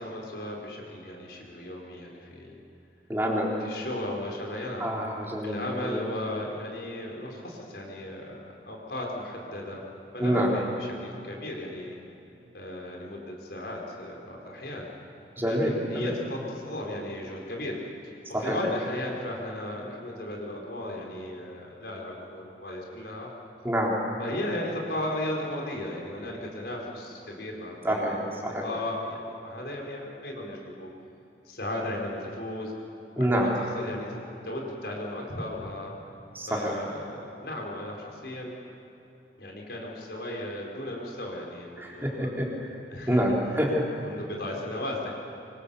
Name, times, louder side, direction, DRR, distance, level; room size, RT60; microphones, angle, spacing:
voice 1, 0.0-2.6 3.6-4.9 5.4-9.8 10.1-12.0 12.5-14.9 15.4-17.8 18.0-23.3 24.2-28.2 28.6-30.9 31.4-32.7 33.2-35.9 36.5-38.6 39.4-42.3 42.9-43.4 44.0-45.2, left 1 dB, 70° left, -1 dB, 4.8 m, -36 dB
voice 2, 3.1-3.5 4.8-6.0 10.2-10.5 15.4-16.1 18.3-18.6 23.6-23.9 27.8-28.2 28.4-28.6 33.2-33.5 36.3-36.8 41.8-42.7 43.1-43.8, equal, 10° right, -2 dB, 3.9 m, -27 dB
25.5 x 25.0 x 7.1 m, 2.9 s
head